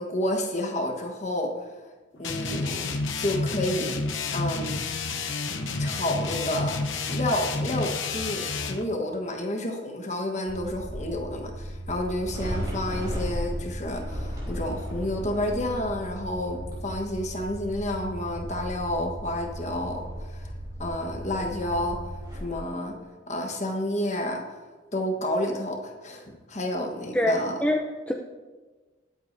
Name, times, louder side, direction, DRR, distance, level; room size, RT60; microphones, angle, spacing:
voice 1, 0.0-1.5 2.2-4.0 4.3-4.8 5.8-6.8 7.1-20.5 20.8-22.0 22.3-23.0 23.3-24.4 24.9-27.6, left 1 dB, 35° left, 2 dB, 1.3 m, -30 dB
sound 1, 2.2-8.8, left 3 dB, 75° left, 0.9 m, -30 dB
sound 2, 10.5-22.4, equal, 20° right, 4.2 m, -35 dB
voice 2, 27.1-28.1, left 1 dB, 5° left, 1 dB, 0.5 m, -25 dB
21.0 x 8.3 x 2.7 m, 1.3 s
head